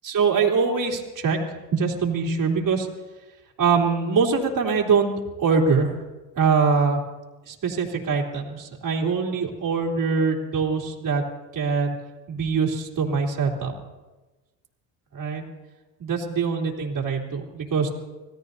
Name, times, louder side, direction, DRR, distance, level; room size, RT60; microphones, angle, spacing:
voice 1, 0.0-1.4 1.7-2.9 3.6-5.1 5.4-6.0 6.3-7.0 7.5-11.2 11.5-11.9 12.3-13.7 15.1-15.4 16.0-17.9, right 5 dB, 40° right, -1 dB, 3.3 m, -23 dB
26.0 x 17.0 x 2.7 m, 1.2 s
supercardioid pair, 75°, 46 cm